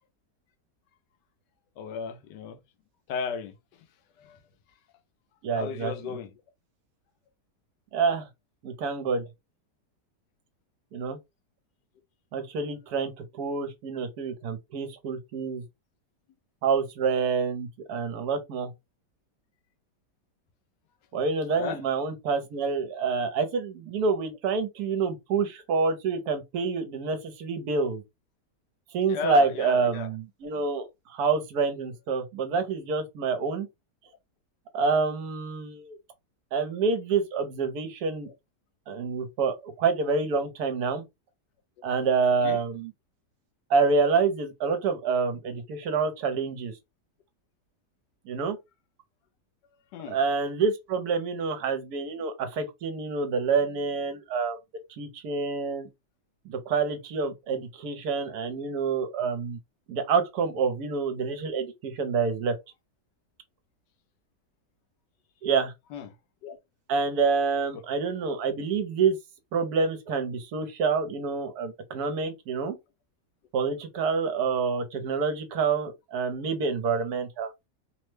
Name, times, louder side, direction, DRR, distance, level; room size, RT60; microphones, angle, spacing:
voice 1, 1.8-2.6 3.1-3.5 4.2-4.4 5.5-6.3 21.6-21.8 29.1-30.1 42.4-42.6 49.9-50.2 65.9-66.1 66.4-66.6, left 7 dB, 85° left, 1.2 m, -34 dB
voice 2, 5.4-6.2 7.9-8.3 8.6-9.2 10.9-11.2 12.3-13.1 13.4-15.6 16.6-18.7 21.1-28.0 28.9-33.7 34.7-36.0 36.5-38.3 38.9-41.0 41.8-42.9 43.7-46.7 48.3-48.6 50.1-54.6 55.0-55.9 56.4-59.6 59.9-62.5 65.4-65.7 66.9-69.2 69.5-72.8 73.5-77.5, right 5 dB, 70° right, 1.1 m, -27 dB
3.2 x 2.1 x 3.1 m
omnidirectional pair, 1.8 m